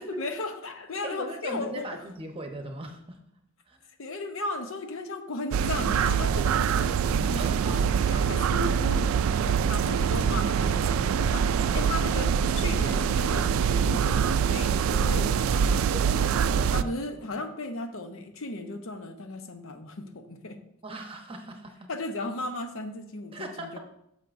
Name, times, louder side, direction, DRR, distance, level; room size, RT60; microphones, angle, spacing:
voice 1, 0.0-2.0 4.0-15.7 16.7-20.6 21.9-23.8, left 2 dB, 75° left, 7 dB, 0.8 m, -36 dB
voice 2, 1.0-3.2 3.7-3.9 7.3-7.9 11.2-12.0 15.9-17.3 20.8-21.9 23.3-23.8, right 1 dB, 25° right, 3 dB, 1.0 m, -39 dB
sound 1, 5.5-16.8, right 7 dB, 80° right, 0.3 m, -24 dB
10.0 x 6.7 x 2.6 m, 0.77 s
head